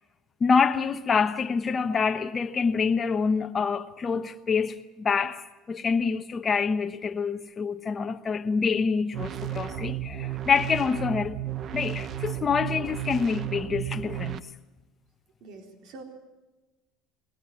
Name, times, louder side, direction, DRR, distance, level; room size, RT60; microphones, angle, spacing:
voice 1, 0.4-11.4 11.7-14.4, left 5 dB, 25° left, 1.1 m, -26 dB
sound 1, 9.1-14.4, right 12 dB, 40° right, 0.8 m, -33 dB
voice 2, 15.4-16.0, right 3 dB, 65° right, 3.9 m, -45 dB
21.5 x 19.0 x 8.5 m
cardioid pair, 135°, 0 cm